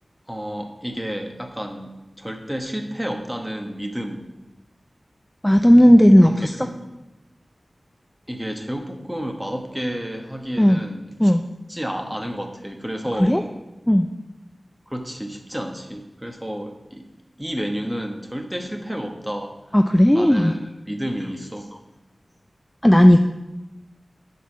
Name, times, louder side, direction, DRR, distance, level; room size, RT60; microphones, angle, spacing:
voice 1, 0.3-4.2 6.2-6.9 8.3-11.3 11.7-13.4 14.9-17.0 17.4-19.6 20.1-21.7, equal, 10° right, 4 dB, 1.2 m, -31 dB
voice 2, 5.4-6.7 10.6-10.8 11.2-11.4 13.2-13.4 13.9-14.1 19.7-20.5 22.8-23.2, equal, 10° left, 6 dB, 0.4 m, -14 dB
8.0 x 4.6 x 6.1 m, 1.0 s
cardioid pair, 45°, 0 cm